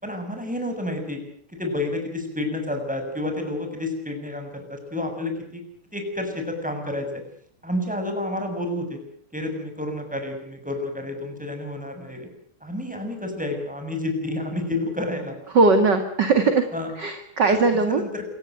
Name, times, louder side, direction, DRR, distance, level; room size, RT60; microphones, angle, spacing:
voice 1, 0.0-1.2 1.5-5.6 5.9-7.2 7.6-9.0 9.3-12.3 12.6-15.3 16.7-16.9 17.5-17.6 17.9-18.2, left 1 dB, ahead, 5 dB, 6.7 m, -30 dB
voice 2, 15.5-16.7 17.0-18.0, right 3 dB, 35° right, 6 dB, 1.9 m, -19 dB
28.0 x 16.5 x 9.4 m, 0.63 s
omnidirectional pair, 4.3 m